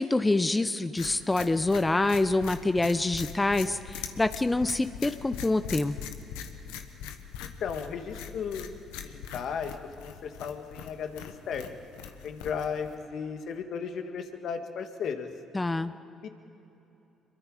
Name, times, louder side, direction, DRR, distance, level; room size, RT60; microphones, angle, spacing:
voice 1, 0.0-6.0 15.5-15.9, left 2 dB, 20° left, 12 dB, 0.8 m, -26 dB
sound 1, 1.0-12.9, left 8 dB, 85° left, 1.2 m, -42 dB
voice 2, 7.4-8.7 9.0-9.7 10.0-11.8 12.2-15.3 16.2-16.3, left 6 dB, 65° left, 6 dB, 1.8 m, -35 dB
25.5 x 22.5 x 5.0 m, 3.0 s
supercardioid pair, 65°, 0 cm